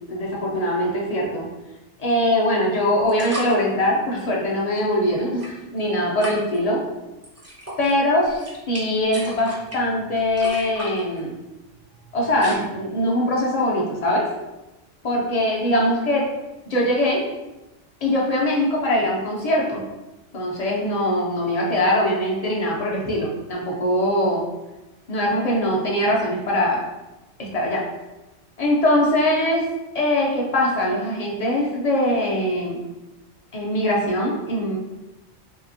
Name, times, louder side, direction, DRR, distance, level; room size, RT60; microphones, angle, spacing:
voice 1, 0.1-1.5 2.0-6.8 7.8-11.4 12.1-14.3 15.0-16.2 16.7-17.2 18.0-19.8 20.3-24.4 25.1-26.8 27.4-27.8 28.6-29.6 29.9-32.8 33.5-34.8, left 1 dB, 45° left, -3 dB, 0.5 m, -22 dB
sound 1, 2.1-2.2 3.0-3.6 5.2-5.8 6.2-6.6 7.2-7.9 8.3-12.6, equal, 20° right, 0.5 m, -36 dB
3.3 x 2.8 x 2.6 m, 1.0 s
omnidirectional pair, 1.3 m